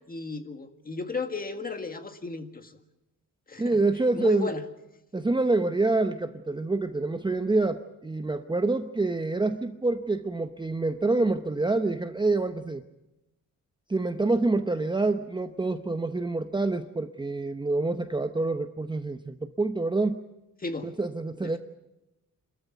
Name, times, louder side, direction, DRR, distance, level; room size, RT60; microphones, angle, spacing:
voice 1, 0.0-2.8 3.5-3.8 4.1-4.6 20.6-20.9 21.4-21.6, left 4 dB, 25° left, 7 dB, 1.8 m, -35 dB
voice 2, 3.6-4.5 5.1-12.8 13.9-20.2 20.8-21.6, right 2 dB, 15° right, 8 dB, 0.8 m, -27 dB
26.5 x 14.0 x 9.3 m, 0.96 s
cardioid pair, 120°, 33 cm